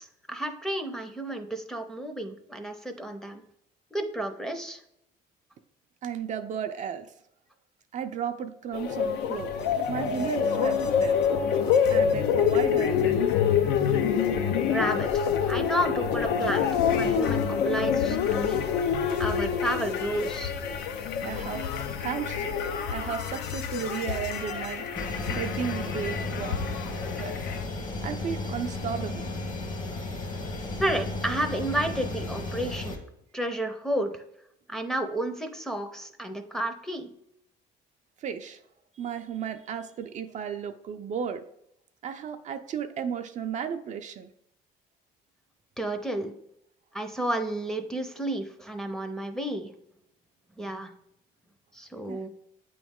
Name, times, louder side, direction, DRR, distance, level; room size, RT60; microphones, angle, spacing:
voice 1, 0.0-3.4 3.9-4.8 14.7-18.6 19.2-20.5 30.8-33.0 33.3-34.2 34.7-37.1 45.8-46.3 46.9-49.7 50.6-50.9 51.7-52.3, right 1 dB, 5° left, 4 dB, 0.6 m, -31 dB
voice 2, 6.0-7.1 7.9-9.5 9.9-11.5 11.9-13.1 21.2-21.7 22.0-22.6 22.9-26.6 27.2-27.4 28.0-29.3 38.2-38.6 38.9-41.4 42.0-44.3 52.1-52.2, right 7 dB, 45° right, 6 dB, 0.4 m, -34 dB
sound 1, 8.7-27.6, left 7 dB, 80° left, 0.6 m, -26 dB
sound 2, 24.9-33.0, left 2 dB, 50° left, 1.3 m, -34 dB
8.4 x 3.1 x 3.6 m, 0.78 s
cardioid pair, 110°, 17 cm